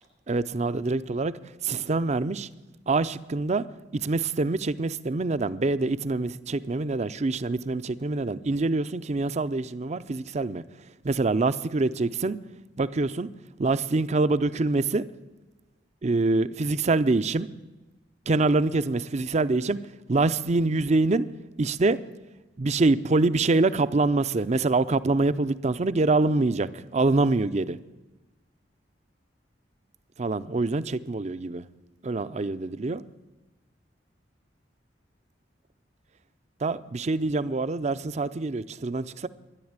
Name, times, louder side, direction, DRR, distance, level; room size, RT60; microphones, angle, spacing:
voice 1, 0.3-1.3 1.6-2.5 2.9-3.7 3.9-10.6 11.0-12.4 12.8-13.3 13.6-15.0 16.0-17.5 18.3-19.8 20.1-21.3 21.6-22.0 22.6-27.8 30.2-31.6 32.0-33.0 36.6-39.3, right 3 dB, 40° right, 0.5 m, -25 dB
13.0 x 10.5 x 8.8 m
head